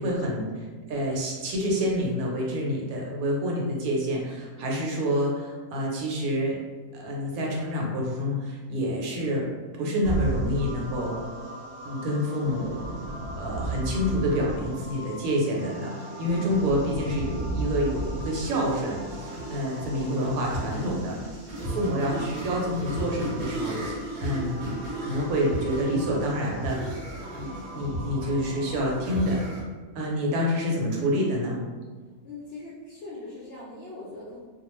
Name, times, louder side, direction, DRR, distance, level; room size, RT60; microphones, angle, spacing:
voice 1, 0.0-6.6 6.9-9.5 9.8-11.2 11.8-12.8 13.4-21.2 21.6-26.9 27.3-29.4 29.9-31.6, equal, 75° right, -2 dB, 1.0 m, -28 dB
sound 1, 10.0-29.6, right 1 dB, 50° right, 0.8 m, -34 dB
voice 2, 20.0-21.4 22.1-22.4 30.7-31.1 32.2-34.4, left 2 dB, 65° left, -7 dB, 0.6 m, -42 dB
2.2 x 2.2 x 3.0 m, 1.4 s
omnidirectional pair, 1.6 m